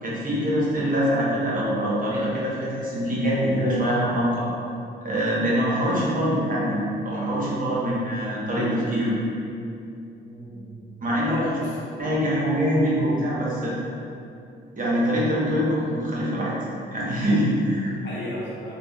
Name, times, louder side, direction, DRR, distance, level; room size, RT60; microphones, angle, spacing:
voice 1, 0.0-4.5 5.0-9.1 11.0-11.5 12.0-13.7 14.8-16.5 16.9-17.9, equal, 40° right, -6 dB, 0.9 m, -24 dB
voice 2, 10.2-11.8 17.8-18.7, left 1 dB, 55° left, -8 dB, 1.0 m, -36 dB
3.3 x 2.1 x 2.2 m, 2.6 s
supercardioid pair, 60°, 21 cm